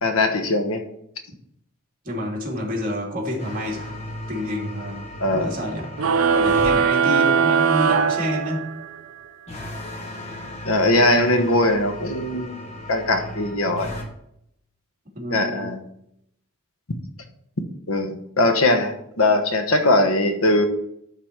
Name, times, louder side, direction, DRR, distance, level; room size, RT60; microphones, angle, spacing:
voice 1, 0.0-0.8 5.2-5.5 10.6-12.5 12.9-13.9 15.3-15.8 17.9-20.7, left 2 dB, 80° left, 6 dB, 1.2 m, -20 dB
voice 2, 2.0-3.9 4.3-5.0 5.3-5.9 6.3-8.7 15.2-15.7, equal, 40° right, -2 dB, 2.5 m, -28 dB
sound 1, 3.4-6.8 9.5-14.1, left 1 dB, 30° left, 1.4 m, -36 dB
sound 2, 6.0-9.0, right 6 dB, 80° right, 0.6 m, -20 dB
12.0 x 4.0 x 4.5 m, 0.74 s
head